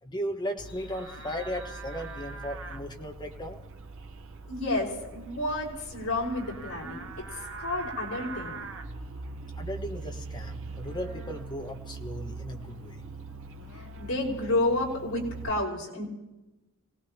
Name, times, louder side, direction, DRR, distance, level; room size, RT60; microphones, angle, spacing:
voice 1, 0.0-3.6 9.6-13.0, equal, 20° left, 3 dB, 1.4 m, -36 dB
Livestock farm animals working animals, 0.6-15.5, right 3 dB, 60° right, 1.1 m, -41 dB
voice 2, 4.5-8.6 13.7-16.0, left 2 dB, 75° left, -2 dB, 5.3 m, -30 dB
27.0 x 18.0 x 2.9 m, 1.1 s
head